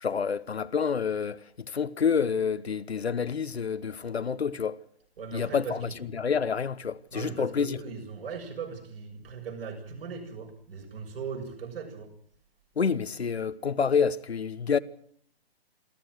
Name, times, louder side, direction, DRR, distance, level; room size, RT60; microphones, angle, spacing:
voice 1, 0.0-4.8 5.3-7.8 12.8-14.8, left 6 dB, 80° left, 1.2 m, -28 dB
voice 2, 5.2-5.9 7.1-12.1, right 6 dB, 65° right, 7.3 m, -39 dB
27.0 x 13.0 x 7.9 m
figure-of-eight pair, 135°, 31 cm